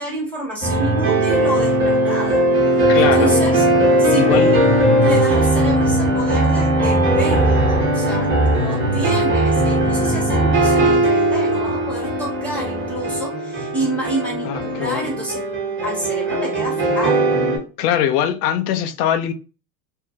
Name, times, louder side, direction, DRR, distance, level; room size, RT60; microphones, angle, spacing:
voice 1, 0.0-3.6 4.0-4.6 5.0-15.4 15.8-17.3, right 1 dB, 5° left, 1.2 m, -28 dB
sound 1, 0.6-17.6, right 1 dB, 25° right, 1.1 m, -18 dB
voice 2, 2.9-3.4 4.2-4.6 14.4-15.1 17.8-19.3, left 9 dB, 70° left, 0.6 m, -21 dB
2.7 x 2.6 x 2.3 m
supercardioid pair, 105°, 49 cm